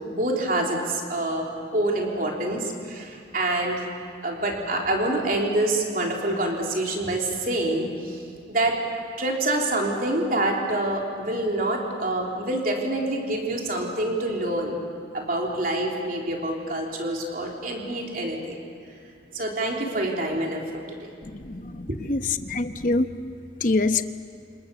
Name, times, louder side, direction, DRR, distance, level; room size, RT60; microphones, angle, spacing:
voice 1, 0.1-3.9 4.2-8.2 8.5-8.8 9.2-14.8 15.1-18.6 19.3-21.1 21.9-22.0, right 1 dB, 45° right, 0 dB, 3.5 m, -26 dB
voice 2, 21.3-23.1 23.6-24.0, left 3 dB, 45° left, 9 dB, 1.0 m, -25 dB
29.0 x 27.5 x 7.0 m, 2.4 s
head